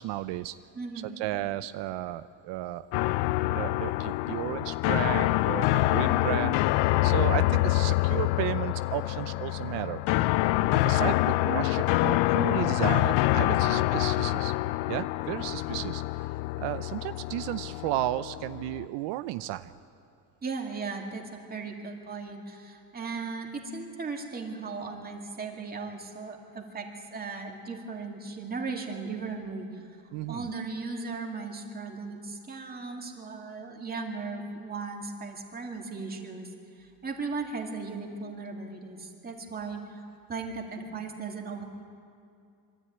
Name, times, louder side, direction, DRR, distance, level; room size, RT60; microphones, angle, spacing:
voice 1, 0.0-0.6 1.2-2.9 3.5-10.0 10.7-14.5 14.9-19.8 30.1-30.5, right 15 dB, 85° right, 12 dB, 0.6 m, -34 dB
voice 2, 0.7-1.2 6.0-6.3 13.6-13.9 15.7-15.8 20.4-29.9 30.3-41.6, right 4 dB, 20° right, 1 dB, 2.4 m, -37 dB
sound 1, 2.9-18.8, left 18 dB, 70° left, 0.5 m, -26 dB
24.0 x 13.0 x 9.3 m, 2.5 s
cardioid pair, 145°, 42 cm